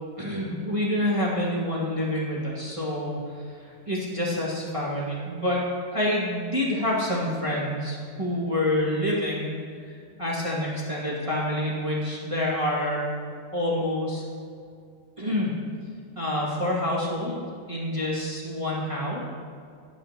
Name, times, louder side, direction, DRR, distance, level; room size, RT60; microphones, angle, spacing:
voice 1, 0.2-5.6 5.9-9.5 9.8-13.1 13.5-14.2 15.2-15.6 16.1-17.4 17.7-19.2, left 1 dB, 10° right, -6 dB, 1.6 m, -27 dB
26.5 x 9.9 x 3.0 m, 2.2 s
omnidirectional pair, 4.2 m